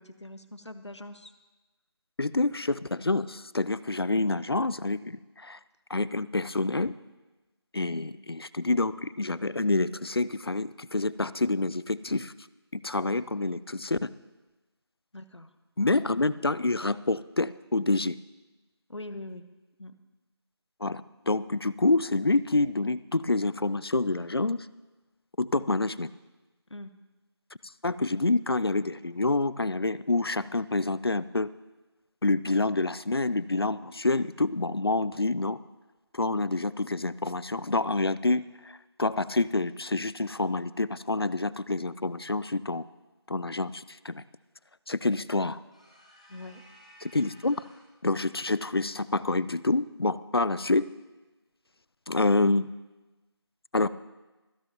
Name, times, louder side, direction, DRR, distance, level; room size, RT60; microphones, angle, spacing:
voice 1, 0.0-1.3 4.1-4.4 7.9-8.1 15.1-15.5 18.9-19.4 19.8-19.9 26.7-26.9 46.3-46.6, left 1 dB, 85° left, 11 dB, 1.2 m, -43 dB
voice 2, 2.2-5.6 5.9-6.9 7.7-12.3 12.7-14.1 15.8-18.2 20.8-24.6 25.4-26.1 27.8-31.5 32.2-35.6 36.1-38.4 39.0-42.8 43.3-44.2 44.9-45.6 47.0-47.6 48.0-50.9 52.1-52.7 53.7-53.9, left 2 dB, 60° left, 18 dB, 0.5 m, -27 dB
sound 1, 45.7-48.0, equal, 15° left, 1.2 m, -55 dB
25.5 x 10.5 x 3.0 m, 1.1 s
figure-of-eight pair, 175°, 14 cm